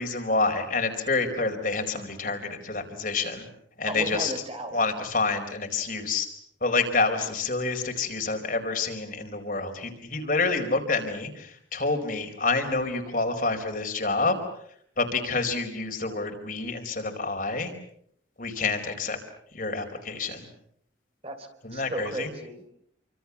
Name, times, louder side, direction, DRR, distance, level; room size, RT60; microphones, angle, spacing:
voice 1, 0.0-3.5 3.8-4.3 4.7-6.3 6.6-14.4 15.0-17.7 18.4-19.2 19.5-20.5 21.6-22.3, left 3 dB, 45° left, 4 dB, 4.6 m, -28 dB
voice 2, 3.9-4.8 21.2-22.7, right 1 dB, 30° right, 6 dB, 3.6 m, -35 dB
29.0 x 25.5 x 7.2 m, 0.68 s
head